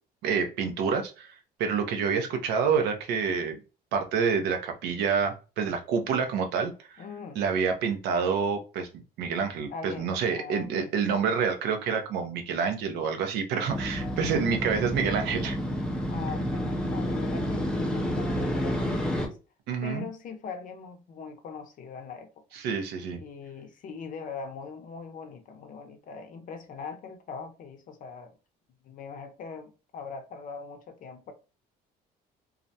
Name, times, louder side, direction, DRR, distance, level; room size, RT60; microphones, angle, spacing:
voice 1, 0.2-1.3 1.6-3.6 3.9-7.0 7.4-8.9 9.2-15.6 19.7-20.1 22.5-23.2, right 6 dB, 85° right, 0.6 m, -28 dB
voice 2, 7.0-7.4 9.7-10.9 16.1-19.4 19.8-22.3 23.2-28.3 28.8-31.3, left 5 dB, 50° left, 0.6 m, -41 dB
Motorcycle, 13.7-19.3, equal, 5° left, 0.4 m, -29 dB
2.4 x 2.1 x 2.6 m
cardioid pair, 110°, 17 cm